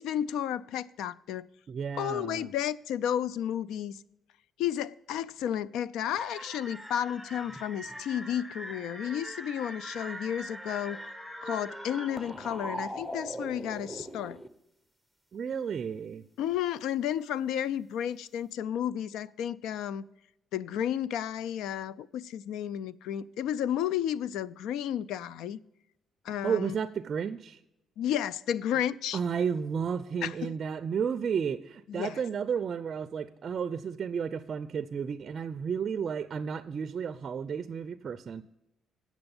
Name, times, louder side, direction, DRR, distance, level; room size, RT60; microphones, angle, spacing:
voice 1, 0.0-1.5 2.0-4.0 4.6-11.0 11.4-14.4 16.4-20.1 20.5-25.6 26.2-26.7 28.0-29.2 30.2-30.5 31.9-32.2, left 10 dB, 85° left, 0.3 m, -32 dB
voice 2, 1.7-2.5 15.3-16.2 26.4-27.6 29.1-38.4, right 7 dB, 50° right, 0.4 m, -32 dB
sound 1, 6.1-14.5, equal, 5° left, 0.8 m, -41 dB
8.8 x 6.1 x 7.0 m
cardioid pair, 95°, 0 cm